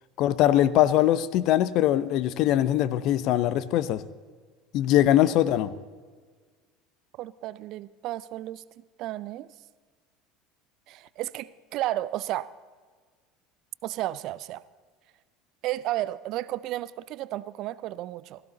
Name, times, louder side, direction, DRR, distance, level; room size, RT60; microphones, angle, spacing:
voice 1, 0.2-4.0 4.7-5.7, left 12 dB, 55° left, 16 dB, 0.7 m, -22 dB
voice 2, 7.2-8.6 9.0-9.5 10.9-12.5 13.8-14.6 15.6-18.4, right 15 dB, 55° right, 18 dB, 0.5 m, -33 dB
17.0 x 15.0 x 4.0 m, 1.5 s
hypercardioid pair, 70°, 0 cm